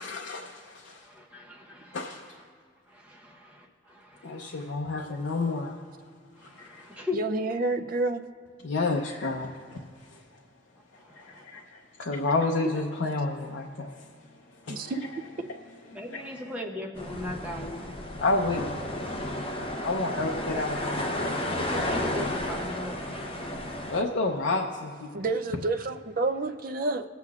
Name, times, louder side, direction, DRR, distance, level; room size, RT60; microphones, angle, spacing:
voice 1, 0.0-1.1 1.9-2.3 4.2-5.8 6.4-7.0 8.6-9.8 10.1-10.2 11.1-14.1 14.5-14.9 15.5-15.6 15.9-16.5 18.2-18.8 19.8-21.2 23.9-25.2, left 3 dB, 70° left, 1 dB, 0.6 m, -30 dB
voice 2, 1.1-2.0 2.9-4.7 6.4-7.2 11.0-11.6 14.7-14.9 15.9-18.0 21.5-23.8, left 2 dB, 5° right, -2 dB, 0.8 m, -39 dB
voice 3, 7.1-8.2 14.7-15.0 15.4-15.5 25.1-27.0, right 3 dB, 45° right, 7 dB, 0.4 m, -29 dB
sound 1, 17.0-24.0, left 1 dB, 25° left, 0.7 m, -32 dB
22.0 x 8.1 x 2.4 m, 2.2 s
head